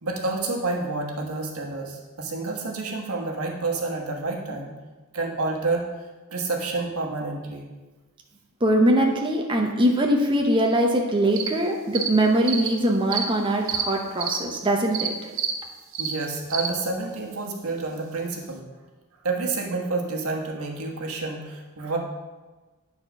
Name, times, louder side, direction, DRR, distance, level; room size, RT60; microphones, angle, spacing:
voice 1, 0.0-4.7 5.1-5.8 6.3-7.6 16.0-18.6 19.2-22.0, right 3 dB, 80° right, 0 dB, 1.4 m, -29 dB
voice 2, 8.6-15.3, right 1 dB, 25° right, 0 dB, 0.8 m, -22 dB
sound 1, 11.3-11.5 12.0-12.1 12.4-12.7 13.1-13.2 13.7-13.8 14.2-14.4 14.9-15.1 15.4-15.5 15.9-16.1 16.5-16.7, right 8 dB, 65° right, 0.8 m, -27 dB
9.3 x 4.3 x 6.1 m, 1.3 s
head